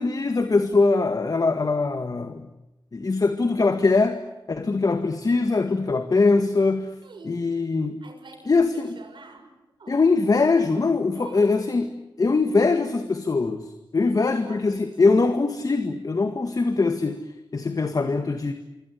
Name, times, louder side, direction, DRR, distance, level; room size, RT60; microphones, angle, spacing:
voice 1, 0.0-2.5 2.9-4.2 4.5-6.9 7.2-8.0 8.5-9.0 9.9-11.9 12.2-18.5, left 3 dB, 50° left, 7 dB, 1.9 m, -22 dB
voice 2, 7.0-7.5 8.0-9.5 9.8-10.1 11.1-11.9 14.0-15.1, right 3 dB, 80° right, 4 dB, 6.4 m, -46 dB
26.0 x 25.5 x 8.5 m, 0.98 s
wide cardioid pair, 80°, 8 cm